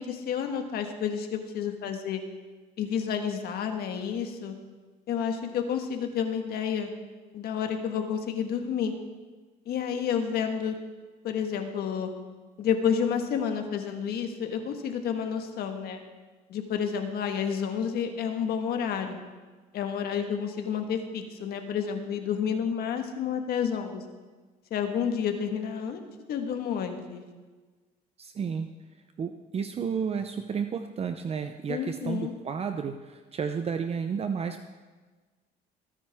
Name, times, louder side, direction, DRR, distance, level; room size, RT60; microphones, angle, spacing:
voice 1, 0.0-2.2 2.8-4.5 5.1-6.9 7.3-8.9 9.6-10.7 11.2-12.1 12.6-16.0 16.5-19.2 19.7-24.0 24.7-26.0 26.3-27.2 31.7-32.3, left 7 dB, 65° left, 5 dB, 1.6 m, -30 dB
voice 2, 28.2-28.7 29.2-34.6, right 6 dB, 35° right, 7 dB, 0.7 m, -32 dB
21.5 x 9.9 x 3.6 m, 1.3 s
cardioid pair, 110°, 17 cm